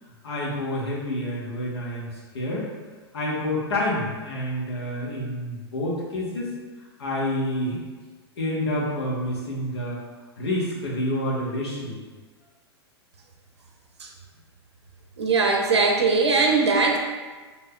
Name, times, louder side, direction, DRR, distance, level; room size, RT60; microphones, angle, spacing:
voice 1, 0.2-2.1 2.3-2.7 3.1-6.5 7.0-7.8 8.4-10.0 10.4-12.0, left 1 dB, 70° left, -5 dB, 1.1 m, -28 dB
voice 2, 15.2-17.0, right 4 dB, 85° right, 1 dB, 0.5 m, -20 dB
2.6 x 2.3 x 3.6 m, 1.4 s
hypercardioid pair, 105°, 14 cm